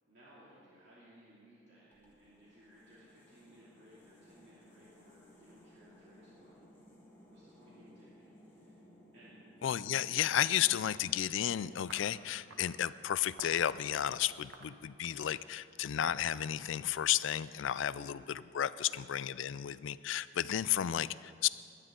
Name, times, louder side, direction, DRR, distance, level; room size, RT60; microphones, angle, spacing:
voice 1, 0.1-6.6 7.3-8.9 9.1-9.5 17.9-18.2 18.8-19.0, equal, 60° right, -9 dB, 2.7 m, -61 dB
sound 1, 1.9-13.0, left 1 dB, 10° left, 1.6 m, -60 dB
voice 2, 9.6-18.2 18.5-21.5, left 10 dB, 75° left, 17 dB, 0.4 m, -33 dB
sound 2, 11.9-12.8 13.4-13.7 14.3-15.4 16.0-16.2 16.4-17.8, right 3 dB, 80° right, 1.3 m, -53 dB
21.5 x 10.0 x 3.8 m, 2.4 s
head